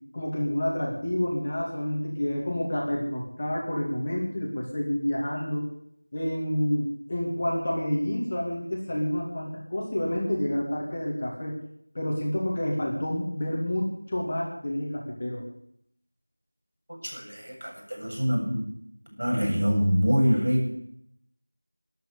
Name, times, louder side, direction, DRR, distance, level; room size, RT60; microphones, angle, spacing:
voice 1, 0.1-5.6 6.1-11.5 11.9-15.4, left 1 dB, 20° left, -3 dB, 2.5 m, -29 dB
voice 2, 17.0-18.7 19.1-20.7, equal, 65° right, 0 dB, 7.9 m, -25 dB
12.5 x 11.5 x 8.4 m, 0.71 s
figure-of-eight pair, 175°, 0 cm